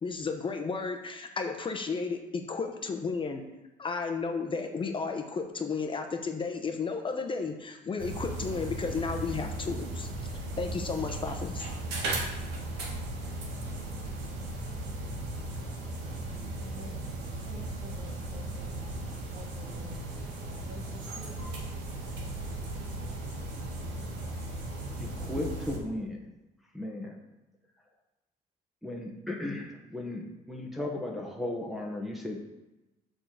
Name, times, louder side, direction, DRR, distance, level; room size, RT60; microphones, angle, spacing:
voice 1, 0.0-3.4 3.8-10.1 10.3-11.7, left 4 dB, 30° left, 5 dB, 0.8 m, -33 dB
sound 1, 8.0-25.8, right 2 dB, 85° right, 1.6 m, -36 dB
voice 2, 16.6-21.5, right 1 dB, 55° right, -1 dB, 2.0 m, -50 dB
voice 3, 25.0-26.3 26.7-27.2 28.8-32.4, left 1 dB, ahead, -1 dB, 1.0 m, -36 dB
6.9 x 3.8 x 6.4 m, 1.0 s
cardioid pair, 110°, 17 cm